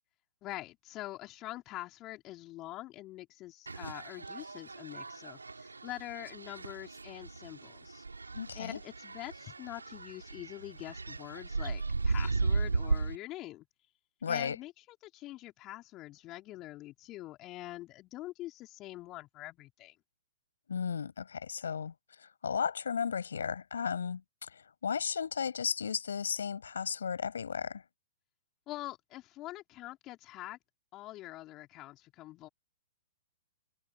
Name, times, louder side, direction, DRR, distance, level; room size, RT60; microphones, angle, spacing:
voice 1, 0.4-8.0 8.5-13.7 14.3-14.7 15.0-20.0 28.7-30.6 30.9-32.5, left 16 dB, 30° left, 4.3 m, -45 dB
sound 1, 3.7-13.2, right 3 dB, 85° right, 4.1 m, -36 dB
voice 2, 8.3-8.8 14.2-14.6 20.7-27.8, left 6 dB, 70° left, 7.6 m, -35 dB
figure-of-eight pair, 115°, 0 cm